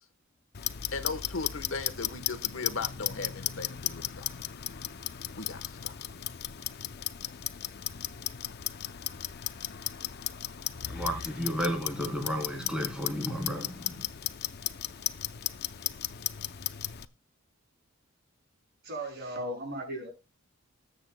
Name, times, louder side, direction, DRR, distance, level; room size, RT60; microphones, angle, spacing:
Clock, 0.5-17.0, left 11 dB, 50° left, 0.6 m, -36 dB
voice 1, 0.9-4.4 5.3-5.9, left 4 dB, 70° left, 1.2 m, -37 dB
voice 2, 10.9-14.0, equal, 5° right, 3.3 m, -32 dB
voice 3, 18.8-20.1, right 1 dB, 50° right, 6.4 m, -36 dB
20.5 x 8.1 x 2.2 m
head